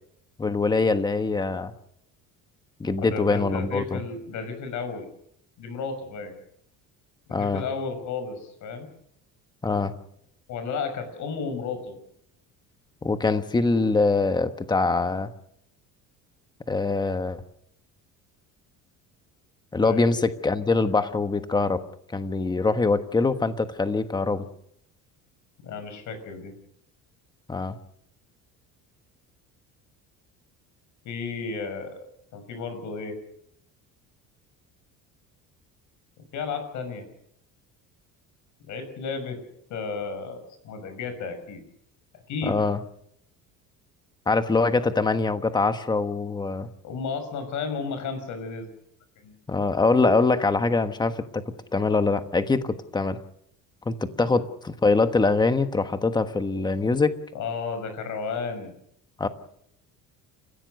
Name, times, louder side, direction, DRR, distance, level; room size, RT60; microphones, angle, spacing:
voice 1, 0.4-1.7 2.8-4.0 7.3-7.6 9.6-9.9 13.0-15.3 16.7-17.4 19.7-21.8 22.1-24.5 27.5-27.8 42.4-42.8 44.3-46.7 49.5-51.4 51.7-53.2 53.8-57.1 59.2-59.3, left 3 dB, 15° left, 9 dB, 1.3 m, -23 dB
voice 2, 3.0-5.1 5.6-6.3 7.3-8.9 10.5-12.0 19.8-20.1 25.6-26.5 31.0-32.0 32.3-33.2 36.3-37.1 38.6-39.4 39.7-41.6 42.3-42.6 46.8-48.7 49.2-49.4 54.3-54.4 57.3-58.7, left 5 dB, 60° left, 9 dB, 6.4 m, -33 dB
29.5 x 15.5 x 6.5 m, 0.72 s
cardioid pair, 155°, 33 cm